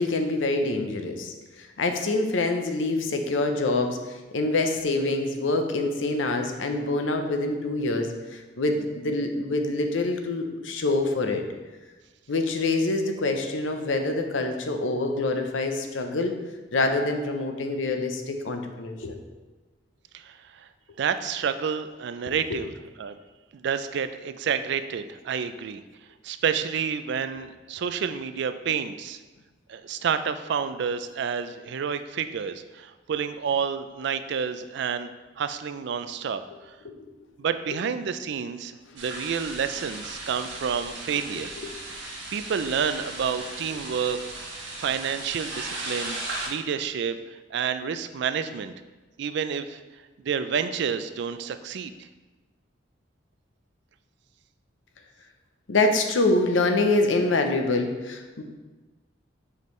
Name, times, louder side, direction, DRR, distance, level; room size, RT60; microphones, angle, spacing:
voice 1, 0.0-11.4 12.3-16.3 16.7-19.2 22.5-22.6 36.8-37.0 41.6-41.7 55.7-58.4, left 2 dB, 85° left, 5 dB, 0.7 m, -26 dB
voice 2, 20.1-20.7 21.0-22.7 23.0-23.2 23.5-25.8 26.2-29.2 29.7-35.1 35.4-36.4 37.4-41.5 42.3-44.2 44.8-46.2 46.5-48.7 49.2-49.8 50.2-51.9, right 7 dB, 65° right, 11 dB, 0.4 m, -29 dB
sound 1, 39.0-46.5, right 2 dB, 80° right, 1.6 m, -37 dB
6.5 x 5.3 x 3.2 m, 1.2 s
head